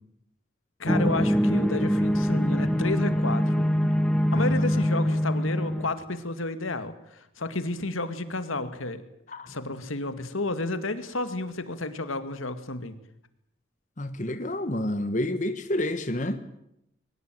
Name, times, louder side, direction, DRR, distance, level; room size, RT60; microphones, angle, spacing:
voice 1, 0.8-3.9 4.3-9.0 9.5-12.9, left 2 dB, 85° left, 10 dB, 2.1 m, -31 dB
sound 1, 0.9-5.9, equal, 5° left, 0.8 m, -24 dB
voice 2, 4.3-4.9 9.3-9.5 14.0-16.4, left 1 dB, 35° left, 9 dB, 1.3 m, -29 dB
22.0 x 19.0 x 9.2 m, 0.80 s
head